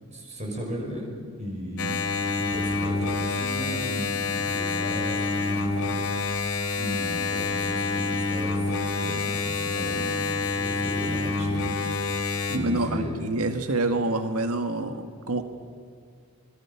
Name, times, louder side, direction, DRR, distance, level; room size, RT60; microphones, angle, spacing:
voice 1, 0.1-1.1 1.4-2.0 2.4-6.0 6.2-8.7 9.0-12.1 12.5-13.1, equal, 30° right, 1 dB, 6.0 m, -36 dB
Engine, 1.8-12.6, left 3 dB, 75° left, 2.6 m, -27 dB
voice 2, 12.5-15.4, right 2 dB, 90° right, 7 dB, 1.7 m, -27 dB
25.5 x 23.0 x 7.2 m, 2.2 s
head